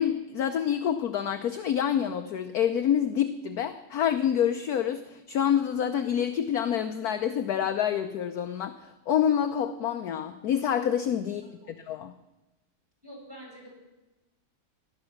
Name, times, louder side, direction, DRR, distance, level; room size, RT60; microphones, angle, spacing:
voice 1, 0.0-8.8 9.1-11.4 11.7-12.1, left 9 dB, 60° left, 8 dB, 1.1 m, -27 dB
voice 2, 13.0-13.8, equal, 10° right, -5 dB, 7.5 m, -47 dB
18.5 x 11.5 x 6.0 m, 1.0 s
omnidirectional pair, 2.1 m